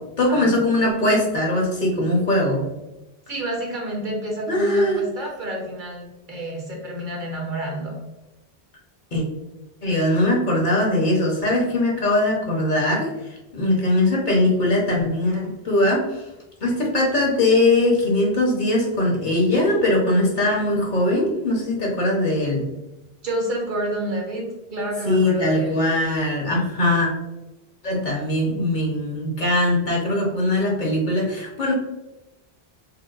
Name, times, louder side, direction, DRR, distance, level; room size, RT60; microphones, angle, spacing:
voice 1, 0.0-2.6 4.5-5.0 9.1-9.2 9.8-13.1 13.5-16.2 16.6-22.7 25.1-27.1 27.8-31.7, left 1 dB, 50° left, -2 dB, 0.9 m, -21 dB
voice 2, 3.3-8.0 23.2-25.8, right 1 dB, 55° right, -1 dB, 0.9 m, -29 dB
4.5 x 2.1 x 2.4 m, 0.99 s
omnidirectional pair, 1.0 m